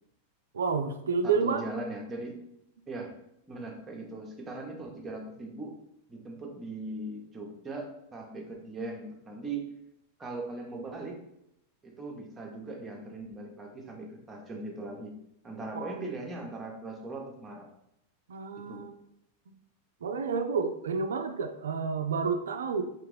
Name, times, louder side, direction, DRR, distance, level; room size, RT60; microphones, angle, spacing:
voice 1, 0.5-1.6 15.7-16.0 18.3-18.9 19.5-19.6 20.0-22.8, right 5 dB, 65° right, 8 dB, 0.3 m, -30 dB
voice 2, 1.2-2.4 2.9-3.1 3.5-5.7 6.1-9.6 10.2-11.2 11.8-15.2 15.4-17.7 18.7-18.8, right 2 dB, 15° right, 1 dB, 0.8 m, -39 dB
3.4 x 2.9 x 3.2 m, 0.80 s
figure-of-eight pair, 90°, 0 cm